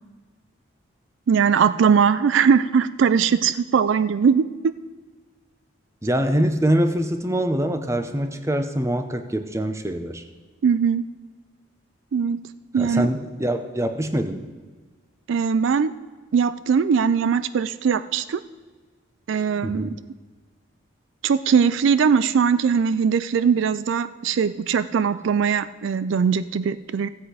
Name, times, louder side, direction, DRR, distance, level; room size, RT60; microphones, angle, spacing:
voice 1, 1.3-4.5 10.6-11.1 12.1-12.4 12.7-13.1 15.3-15.9 16.3-18.4 19.3-19.9 21.2-27.1, right 6 dB, 70° right, 14 dB, 0.3 m, -20 dB
voice 2, 6.0-10.2 12.8-14.4 19.6-20.0, right 1 dB, 15° right, 8 dB, 0.6 m, -24 dB
15.0 x 7.9 x 4.9 m, 1.4 s
head